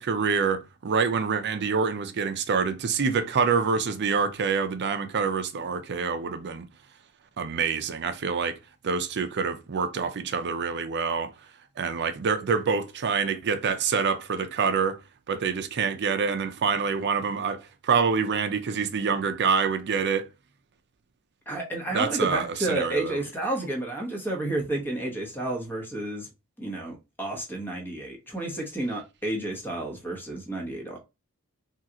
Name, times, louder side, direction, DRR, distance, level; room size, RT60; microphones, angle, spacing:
voice 1, 0.0-6.7 7.4-8.6 8.8-11.3 11.8-15.0 15.3-20.3 21.9-23.2, right 5 dB, 50° right, 0.5 m, -26 dB
voice 2, 21.5-26.3 26.6-31.0, right 2 dB, 10° left, 1.0 m, -31 dB
3.6 x 2.4 x 2.8 m
head